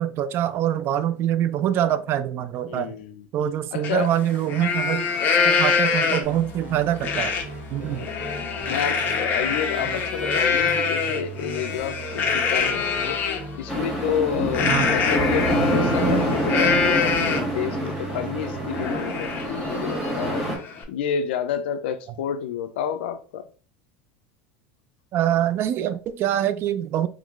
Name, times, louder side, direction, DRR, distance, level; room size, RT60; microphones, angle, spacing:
voice 1, 0.0-2.9 3.3-5.1 5.4-7.4 7.7-8.1 14.7-14.9 25.1-27.1, right 11 dB, 40° right, 0.3 m, -24 dB
voice 2, 2.7-3.3 3.7-4.1 4.5-4.8 7.7-8.2 8.7-13.2 13.5-23.5, left 8 dB, 85° left, 0.4 m, -30 dB
Livestock farm animals working animals, 3.8-3.9 4.3-6.4 7.0-7.4 7.8-13.4 14.5-17.6 18.0-18.1 18.5-20.8, left 5 dB, 35° left, 0.8 m, -25 dB
sound 1, 6.2-18.9, right 3 dB, 25° right, 0.9 m, -38 dB
sound 2, 13.7-20.6, right 1 dB, 5° right, 1.3 m, -26 dB
3.7 x 3.1 x 2.4 m
supercardioid pair, 130°, 6 cm